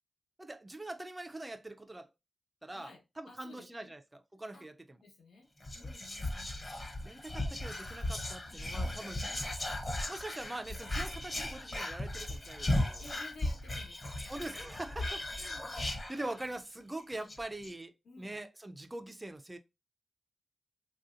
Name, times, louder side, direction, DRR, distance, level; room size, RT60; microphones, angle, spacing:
voice 1, 0.4-2.1 2.6-5.0 7.0-9.2 10.1-13.0 14.3-19.6, right 2 dB, 15° right, 0.3 m, -43 dB
voice 2, 3.3-4.0 4.5-4.6 5.0-5.5 5.7-6.9 9.3-9.5 13.0-14.5 17.1-17.3 18.0-18.4, left 2 dB, 90° left, 1.1 m, -54 dB
Whispering, 5.6-16.7 17.0-17.1 17.3-17.7, left 1 dB, 25° left, 0.7 m, -37 dB
3.4 x 2.7 x 2.4 m
wide cardioid pair, 165°, 0 cm